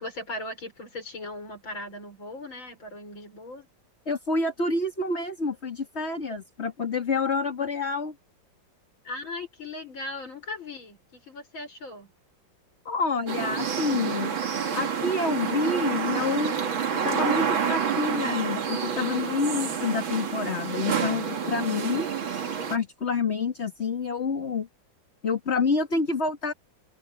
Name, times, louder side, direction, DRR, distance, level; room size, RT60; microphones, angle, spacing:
voice 1, 0.0-3.7 9.0-12.1, left 2 dB, 85° left, 7.2 m, -38 dB
voice 2, 4.1-8.1 12.8-14.4 14.7-16.6 17.0-22.1 22.7-24.7 25.2-26.5, left 4 dB, 35° left, 2.5 m, -28 dB
sound 1, 13.3-22.8, right 7 dB, 85° right, 2.9 m, -28 dB
omnidirectional pair, 2.1 m